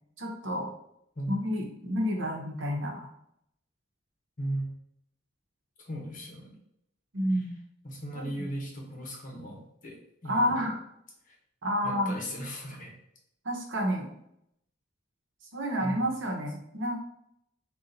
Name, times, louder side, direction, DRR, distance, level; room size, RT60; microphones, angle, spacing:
voice 1, 0.2-0.7 1.3-3.1 7.1-7.5 8.1-8.5 10.2-10.7 11.6-12.1 13.4-14.1 15.5-17.0, equal, 65° right, 0 dB, 0.9 m, -30 dB
voice 2, 4.4-4.7 5.8-6.6 7.3-7.4 7.8-10.7 11.2-11.4 11.8-12.9 15.8-16.1, right 1 dB, 40° left, 0 dB, 1.0 m, -37 dB
4.0 x 2.4 x 3.9 m, 0.75 s
head